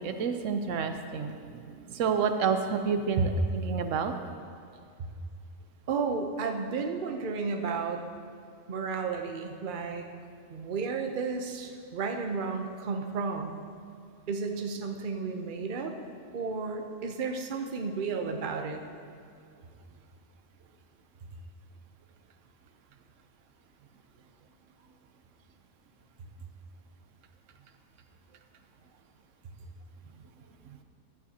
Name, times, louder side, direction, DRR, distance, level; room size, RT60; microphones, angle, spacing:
voice 1, 0.0-4.1, right 6 dB, 80° right, 7 dB, 1.0 m, -29 dB
voice 2, 5.9-8.0 8.7-10.1 10.5-13.6 14.3-15.9 16.3-18.8, right 4 dB, 45° right, 4 dB, 0.8 m, -32 dB
14.5 x 9.6 x 2.8 m, 2.2 s
omnidirectional pair, 1.3 m